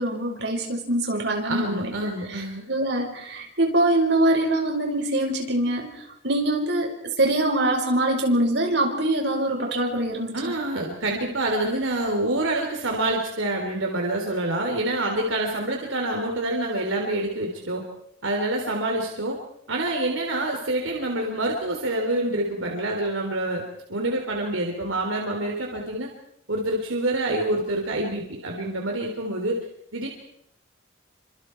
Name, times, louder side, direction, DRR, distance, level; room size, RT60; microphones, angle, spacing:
voice 1, 0.0-1.9 2.3-10.5, right 1 dB, 60° right, 2 dB, 5.4 m, -24 dB
voice 2, 1.4-2.6 10.3-17.8 18.2-19.4 19.7-23.6 23.9-26.1 26.5-29.6 29.9-30.1, right 1 dB, 90° right, 1 dB, 3.7 m, -27 dB
29.0 x 26.0 x 4.7 m, 0.69 s
head